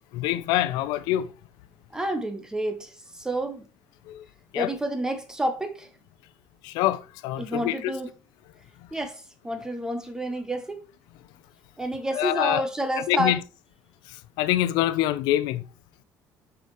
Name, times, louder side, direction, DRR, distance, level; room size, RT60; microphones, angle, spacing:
voice 1, 0.1-1.3 4.1-4.3 4.5-4.7 6.6-7.9 12.1-12.6 13.1-13.4 14.1-15.6, left 14 dB, 80° left, 0.5 m, -25 dB
voice 2, 1.9-3.7 4.5-5.9 7.4-8.1 8.9-10.9 11.8-13.4, right 1 dB, 10° right, 0.7 m, -29 dB
6.8 x 5.0 x 3.1 m
cardioid pair, 155°, 7 cm